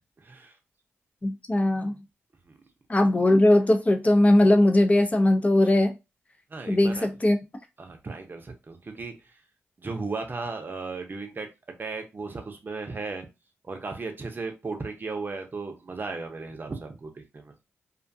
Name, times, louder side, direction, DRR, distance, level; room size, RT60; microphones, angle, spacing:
voice 1, 0.2-0.5 2.5-2.6 5.6-5.7 6.5-7.1 7.8-9.1 9.8-11.5 11.8-13.3 13.6-17.5, right 3 dB, 40° right, 0.7 m, -35 dB
voice 2, 1.2-1.9 2.9-5.9 6.7-7.4, left 1 dB, 25° left, 0.6 m, -20 dB
2.5 x 2.3 x 2.6 m
cardioid pair, 55°, 5 cm